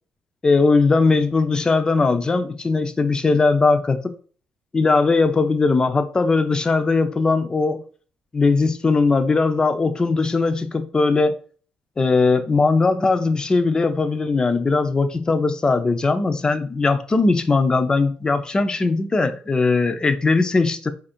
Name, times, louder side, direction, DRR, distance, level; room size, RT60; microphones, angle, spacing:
voice 1, 0.4-4.1 4.7-7.8 8.3-11.4 12.0-20.9, left 3 dB, 25° left, 0.6 m, -19 dB
4.1 x 2.6 x 4.3 m
cardioid pair, 85°, 3 cm